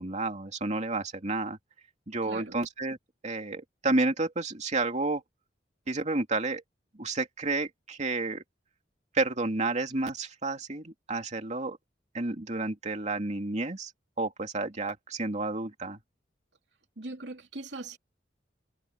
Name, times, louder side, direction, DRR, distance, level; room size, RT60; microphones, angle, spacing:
voice 1, 0.0-1.6 2.1-3.0 3.2-5.2 5.9-6.6 7.0-8.4 9.1-11.8 12.1-13.9 14.2-16.0, right 2 dB, 40° right, 2.7 m, -30 dB
voice 2, 2.2-2.6 17.0-18.0, right 2 dB, 75° right, 3.3 m, -40 dB
head